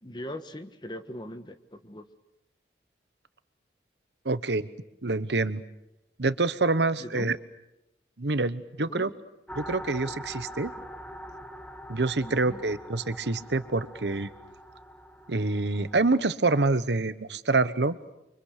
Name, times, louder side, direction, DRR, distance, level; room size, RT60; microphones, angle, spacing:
voice 1, 0.0-2.1 7.0-7.3 8.8-9.1 12.2-12.6, left 1 dB, 25° left, 9 dB, 1.4 m, -40 dB
voice 2, 4.2-4.7 5.0-5.6 6.2-7.4 8.2-9.1 9.5-10.7 11.9-14.3 15.3-18.0, right 3 dB, 80° right, 13 dB, 1.1 m, -26 dB
sound 1, 9.5-16.3, equal, 5° left, 1.7 m, -43 dB
30.0 x 25.0 x 6.7 m, 0.91 s
head